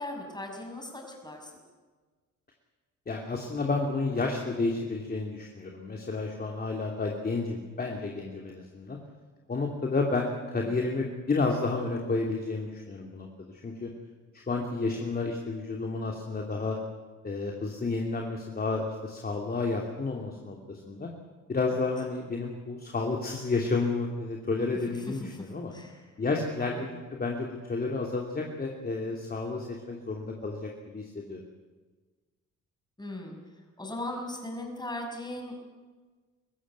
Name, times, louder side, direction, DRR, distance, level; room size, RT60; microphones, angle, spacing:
voice 1, 0.0-1.5 10.7-10.8 24.9-25.5 25.7-26.0 26.6-26.9 33.0-33.4 33.8-35.5, left 1 dB, 15° left, 2 dB, 6.3 m, -38 dB
voice 2, 3.1-9.0 9.5-13.9 14.3-16.8 17.2-21.1 21.5-25.7 26.2-31.4, left 3 dB, 30° left, 1 dB, 2.9 m, -31 dB
23.0 x 15.0 x 9.5 m, 1.4 s
cardioid pair, 90°, 30 cm